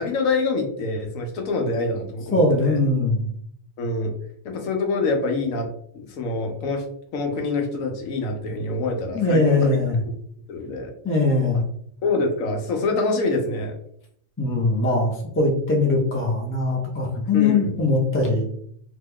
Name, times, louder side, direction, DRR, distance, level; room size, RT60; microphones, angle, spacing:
voice 1, 0.0-2.8 3.8-4.1 4.4-5.7 5.9-6.8 7.1-10.0 10.5-10.9 12.0-13.7 17.3-17.7, left 3 dB, 80° left, 3 dB, 1.1 m, -25 dB
voice 2, 2.3-3.3 9.1-10.0 11.0-11.7 14.4-18.5, left 2 dB, 15° left, 0 dB, 0.4 m, -21 dB
3.0 x 2.2 x 3.5 m, 0.67 s
omnidirectional pair, 1.4 m